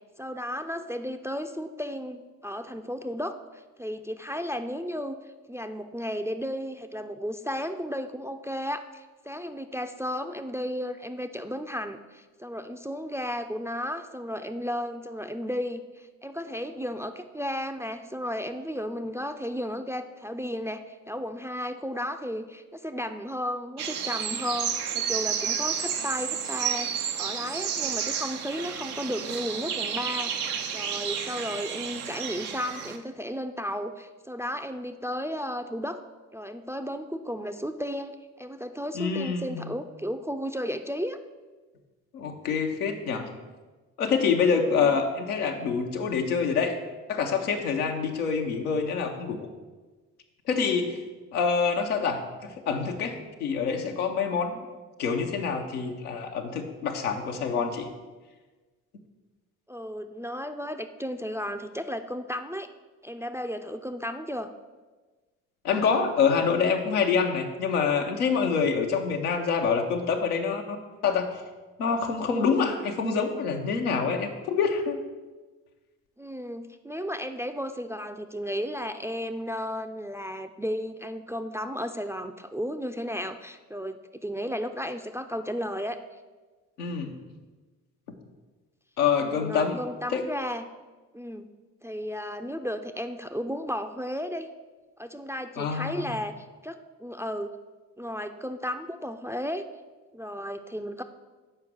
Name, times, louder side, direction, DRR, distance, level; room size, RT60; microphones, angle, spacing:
voice 1, 0.2-5.2 5.5-36.0 36.3-41.2 44.6-44.9 59.7-62.7 63.0-64.5 76.2-86.0 89.2-90.6 91.1-91.5 91.8-94.5 95.0-96.3 96.6-96.7 97.0-97.5 98.0-99.6 100.1-101.0, equal, 5° right, 8 dB, 0.4 m, -34 dB
sound 1, 23.8-33.0, right 7 dB, 90° right, 0.6 m, -31 dB
voice 2, 38.9-39.7 42.1-43.3 44.0-46.7 47.1-49.5 50.5-51.0 51.3-52.2 52.7-54.6 55.0-57.9 65.6-70.8 71.0-71.3 71.8-75.0 86.8-87.1 89.0-89.8 90.1-90.2 95.6-96.1, left 5 dB, 85° left, 2 dB, 0.8 m, -26 dB
6.6 x 5.0 x 6.0 m, 1.3 s
hypercardioid pair, 45°, 43 cm